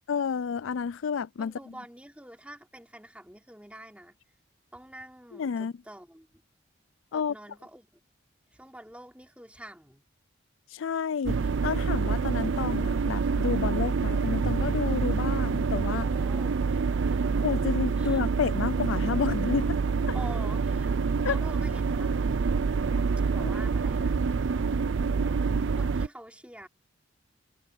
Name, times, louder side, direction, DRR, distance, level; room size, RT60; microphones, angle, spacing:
voice 1, 0.1-1.5 5.3-5.7 7.1-7.3 10.7-16.1 17.4-19.8 21.2-21.4 23.4-23.5, left 6 dB, 75° left, 0.4 m, -30 dB
voice 2, 1.4-4.1 4.7-6.3 7.1-7.9 8.5-10.0 16.0-17.2 18.0-18.2 20.1-20.9 21.2-22.1 23.3-24.2 25.7-26.7, right 1 dB, 5° right, 3.5 m, -46 dB
sound 1, 11.3-26.1, right 5 dB, 65° right, 0.5 m, -27 dB
head